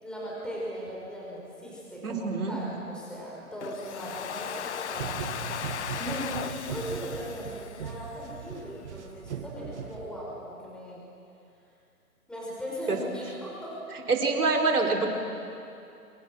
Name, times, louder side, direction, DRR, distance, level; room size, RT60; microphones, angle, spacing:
voice 1, 0.0-5.3 6.0-11.0 12.3-13.8, equal, ahead, -5 dB, 5.1 m, -38 dB
voice 2, 2.0-2.6 12.9-13.0 14.1-15.1, right 3 dB, 75° right, 1 dB, 4.6 m, -25 dB
Domestic sounds home sounds, 3.6-8.6, left 8 dB, 50° left, 1.3 m, -37 dB
sound 1, 4.9-10.5, right 7 dB, 50° right, 1.7 m, -39 dB
29.5 x 25.0 x 6.3 m, 2.5 s
hypercardioid pair, 150°, 45 cm